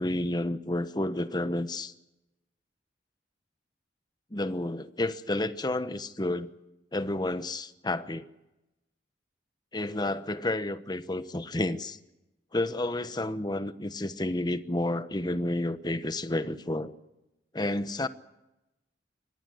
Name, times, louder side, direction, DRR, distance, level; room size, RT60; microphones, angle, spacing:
voice 1, 0.0-1.9 4.3-6.5 6.9-8.3 9.7-12.0 12.5-16.9 17.5-18.1, left 1 dB, 25° left, 1.1 m, -30 dB
24.0 x 19.0 x 7.9 m
head